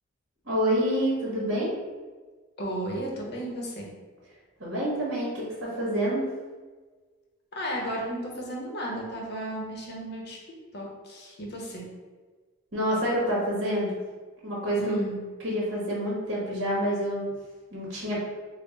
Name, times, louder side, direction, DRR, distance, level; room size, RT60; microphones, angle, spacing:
voice 1, 0.4-1.7 4.6-5.5 5.8-6.2 12.7-14.0 14.4-15.0 15.4-17.3 17.7-18.2, equal, 55° right, -6 dB, 1.2 m, -27 dB
voice 2, 2.6-3.9 7.5-10.4 10.7-11.8 14.8-15.2, right 1 dB, 50° left, -2 dB, 0.8 m, -34 dB
3.7 x 2.1 x 3.9 m, 1.4 s
head